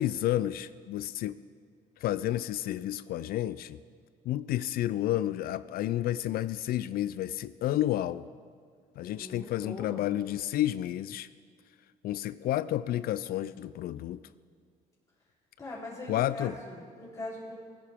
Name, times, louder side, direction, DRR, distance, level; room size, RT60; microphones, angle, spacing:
voice 1, 0.0-1.4 2.0-3.8 4.3-8.3 9.0-11.3 12.0-14.2 16.1-16.6, left 13 dB, 65° left, 16 dB, 0.4 m, -30 dB
voice 2, 9.1-10.0 15.6-17.6, left 2 dB, 20° left, -7 dB, 3.7 m, -41 dB
20.0 x 11.0 x 3.6 m, 2.1 s
cardioid pair, 110°, 17 cm